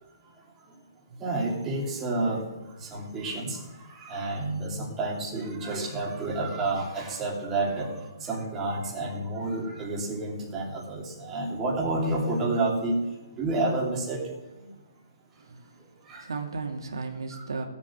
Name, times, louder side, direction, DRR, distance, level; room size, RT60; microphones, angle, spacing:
voice 1, 1.2-2.4 2.8-13.0 13.3-14.2 16.1-16.2, right 2 dB, 15° right, -3 dB, 3.0 m, -30 dB
voice 2, 15.4-17.6, right 4 dB, 85° right, 2 dB, 2.6 m, -36 dB
16.5 x 8.2 x 7.5 m, 1.1 s
hypercardioid pair, 160°, 2 cm